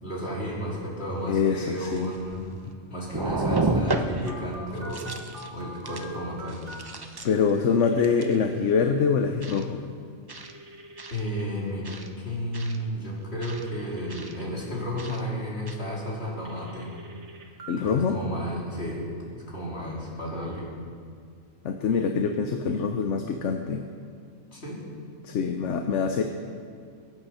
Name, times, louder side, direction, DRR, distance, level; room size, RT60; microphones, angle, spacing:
voice 1, 0.0-5.1 5.5-7.3 11.1-17.0 17.8-20.7 24.5-24.8, equal, 50° left, -5 dB, 3.5 m, -33 dB
sound 1, 1.2-1.3 1.8-2.7 3.1-4.4 4.8-5.5 5.8-6.1 6.5-7.5 8.0-8.3 9.4-9.6 10.3-10.5 11.0-11.2 11.8-12.1 12.5-12.8 13.4-13.6 14.1-14.3 15.0-15.2 15.7-15.8, right 2 dB, 25° right, 0.6 m, -31 dB
voice 2, 1.3-2.1 7.2-9.8 17.7-18.2 21.6-23.8 25.2-26.2, left 5 dB, 70° left, 5 dB, 1.1 m, -24 dB
Telephone, 4.3-6.8 7.8-8.5 10.4-11.4 13.4-14.5 16.5-17.7, right 1 dB, 60° right, 1.8 m, -44 dB
22.0 x 8.8 x 5.7 m, 2.2 s
omnidirectional pair, 1.3 m